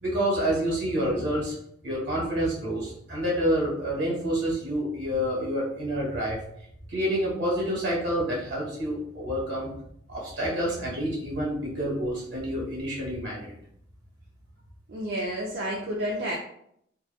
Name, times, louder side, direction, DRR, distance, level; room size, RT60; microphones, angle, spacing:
voice 1, 0.0-1.5 1.8-6.4 6.9-9.7 10.1-13.5, equal, 85° right, -5 dB, 1.4 m, -28 dB
voice 2, 14.9-16.3, equal, 60° right, -2 dB, 0.4 m, -30 dB
2.9 x 2.2 x 2.3 m, 0.71 s
head